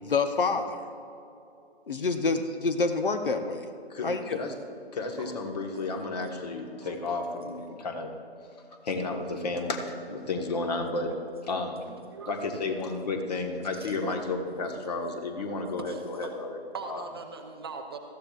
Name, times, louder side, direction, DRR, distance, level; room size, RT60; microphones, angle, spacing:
voice 1, 0.0-0.8 1.9-3.7 4.0-4.4, left 4 dB, 55° left, 8 dB, 0.9 m, -27 dB
voice 2, 3.9-4.5 4.9-8.1 8.8-11.1 11.4-11.8 12.2-16.6 16.9-17.1, left 3 dB, 40° left, 4 dB, 1.5 m, -32 dB
voice 3, 11.9-12.5 14.0-14.1 15.9-16.3 16.7-18.0, right 5 dB, 25° right, 3 dB, 0.6 m, -40 dB
19.5 x 14.5 x 2.5 m, 2.7 s
figure-of-eight pair, 140°, 32 cm